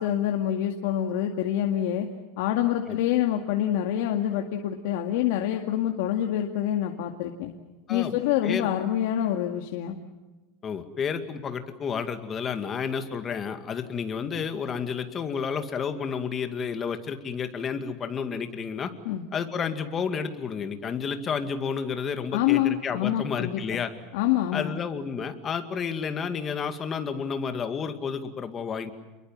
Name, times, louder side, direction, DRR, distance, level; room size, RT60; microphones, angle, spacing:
voice 1, 0.0-2.1 2.4-7.5 7.9-10.0 19.1-19.3 22.3-23.8 24.1-24.8, left 11 dB, 75° left, 3 dB, 2.1 m, -26 dB
voice 2, 7.9-8.7 10.6-18.9 19.3-23.9 24.5-28.9, left 6 dB, 25° left, 8 dB, 2.1 m, -31 dB
29.0 x 22.0 x 7.4 m, 1.1 s
supercardioid pair, 155°, 0 cm